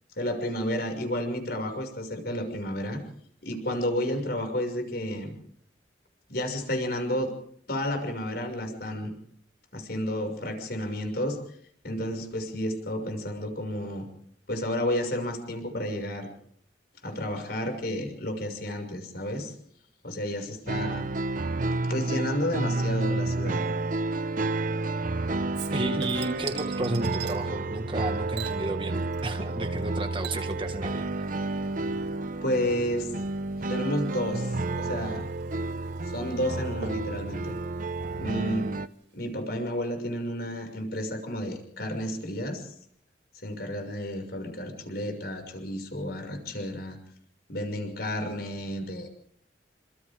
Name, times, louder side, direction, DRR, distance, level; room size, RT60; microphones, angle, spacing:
voice 1, 0.2-3.0 3.4-5.3 6.3-7.3 7.7-9.1 9.7-11.4 11.8-14.1 14.5-16.3 17.0-19.5 20.0-21.1 21.9-23.6 32.4-33.1 33.7-35.3 36.1-37.6 38.2-38.7 39.1-42.7 43.4-47.0 47.5-49.1, equal, 60° left, 5 dB, 6.3 m, -31 dB
sound 1, 20.7-38.9, right 2 dB, 45° right, 0.8 m, -30 dB
Chink clink / Liquid, 25.5-27.4 28.3-29.5 29.8-38.8 39.1-39.2, right 8 dB, 85° right, 5.0 m, -45 dB
voice 2, 25.7-31.3, right 1 dB, 30° right, 6 dB, 1.8 m, -32 dB
29.0 x 26.5 x 3.7 m, 0.65 s
head